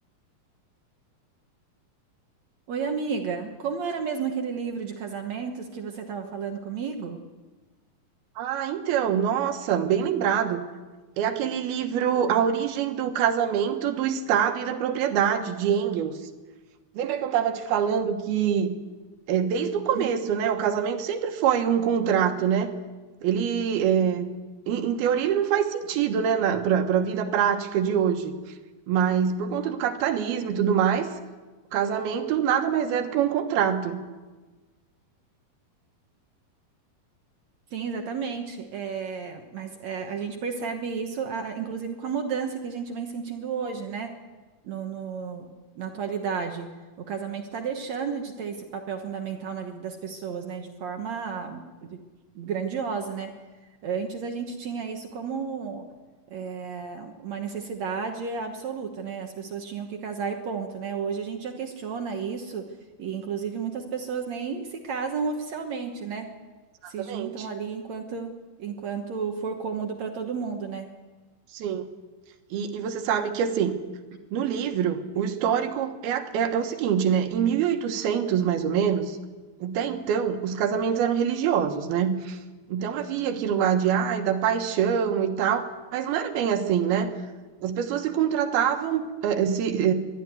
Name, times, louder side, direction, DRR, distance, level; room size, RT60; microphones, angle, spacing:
voice 1, 2.7-7.2 19.9-20.1 37.7-44.2 44.6-46.7 47.0-52.0 52.4-53.4 53.8-55.9 56.3-66.3 66.9-70.9, right 6 dB, 65° right, 4 dB, 2.0 m, -32 dB
voice 2, 8.4-10.7 11.2-16.2 16.9-18.8 19.3-22.7 23.2-24.3 24.7-28.3 28.9-31.1 31.7-34.0 66.8-67.5 71.5-71.8 72.5-73.8 74.3-79.2 79.6-82.4 82.7-87.1 87.6-89.9, right 8 dB, 80° right, 7 dB, 3.1 m, -25 dB
21.0 x 13.0 x 9.4 m, 1.3 s
omnidirectional pair, 4.4 m